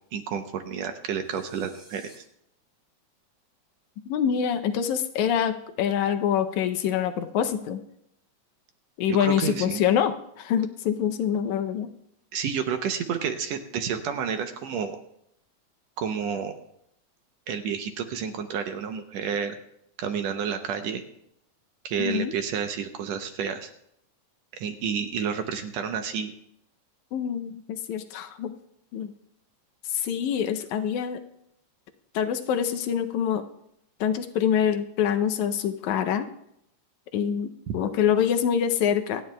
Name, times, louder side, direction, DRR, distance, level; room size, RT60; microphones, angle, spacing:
voice 1, 0.1-2.2 9.1-9.8 12.3-15.0 16.0-16.5 17.5-19.6 20.0-21.0 21.8-23.7 24.5-26.3 37.7-37.8, right 7 dB, 75° right, 7 dB, 1.8 m, -30 dB
sound 1, 1.2-2.2, equal, 5° left, 3.4 m, -54 dB
voice 2, 4.1-7.8 9.0-11.9 22.0-22.3 27.1-28.5 28.9-29.1 29.9-31.2 32.2-33.4 34.0-36.3 37.1-39.2, left 8 dB, 85° left, 8 dB, 2.0 m, -25 dB
27.0 x 9.6 x 2.2 m, 0.75 s
omnidirectional pair, 3.3 m